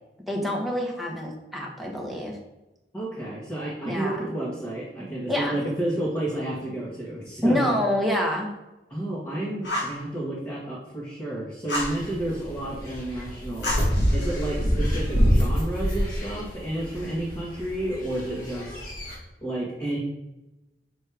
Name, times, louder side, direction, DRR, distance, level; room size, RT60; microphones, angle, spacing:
voice 1, 0.3-2.4 3.8-4.2 5.3-5.6 7.4-8.5, equal, ahead, -2 dB, 1.3 m, -26 dB
voice 2, 2.9-7.8 8.9-18.8 19.4-20.0, right 1 dB, 15° left, -7 dB, 1.5 m, -31 dB
Fire, 9.6-10.0 11.7-12.0 13.6-14.5, left 1 dB, 85° left, 2.4 m, -30 dB
sound 1, 11.7-19.2, equal, 55° left, 2.0 m, -27 dB
6.3 x 4.3 x 4.8 m, 0.99 s
head